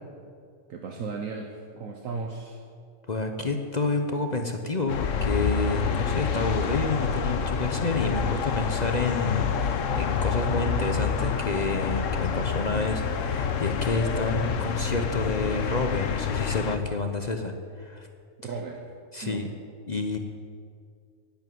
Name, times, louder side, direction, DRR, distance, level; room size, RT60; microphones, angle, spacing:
voice 1, 0.7-2.6 18.4-18.9 19.2-19.4, right 4 dB, 70° right, 3 dB, 1.3 m, -35 dB
voice 2, 3.1-18.1 19.1-19.5 19.9-20.2, left 3 dB, 35° left, 5 dB, 0.8 m, -29 dB
sound 1, 4.9-16.8, left 6 dB, 65° left, 1.2 m, -27 dB
10.5 x 9.3 x 9.3 m, 2.2 s
omnidirectional pair, 1.5 m